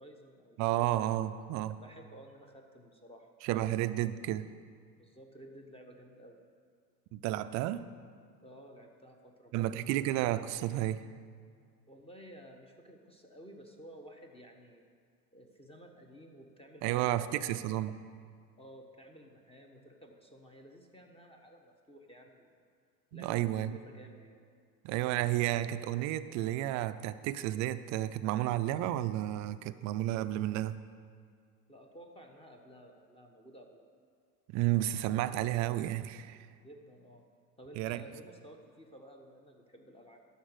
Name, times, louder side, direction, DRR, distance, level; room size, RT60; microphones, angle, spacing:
voice 1, 0.0-0.8 1.8-3.3 4.9-6.4 8.4-10.0 11.9-14.8 15.3-17.7 18.6-22.6 23.1-24.4 31.7-33.8 36.6-37.2 37.6-40.2, equal, 10° left, 2 dB, 1.1 m, -54 dB
voice 2, 0.6-1.8 3.4-4.5 7.1-7.9 9.5-11.0 16.8-18.0 23.1-23.7 24.8-30.8 34.5-36.4 37.8-38.0, right 14 dB, 35° right, 12 dB, 0.4 m, -32 dB
12.5 x 4.1 x 7.9 m, 2.1 s
hypercardioid pair, 80°, 49 cm